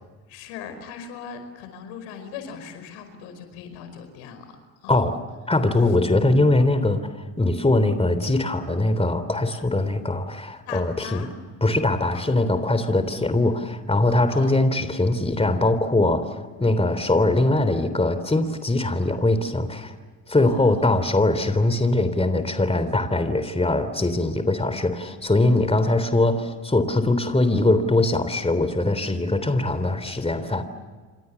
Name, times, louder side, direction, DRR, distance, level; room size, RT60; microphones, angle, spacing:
voice 1, 0.3-4.6 4.8-5.0 10.7-11.3 12.1-12.3 14.3-14.6 20.4-21.0, left 7 dB, 80° left, 8 dB, 5.2 m, -39 dB
voice 2, 4.9-5.2 5.5-7.1 7.4-11.3 11.6-19.9 20.3-30.6, left 2 dB, 10° left, 11 dB, 3.4 m, -21 dB
29.5 x 26.0 x 7.0 m, 1.4 s
hypercardioid pair, 65°, 46 cm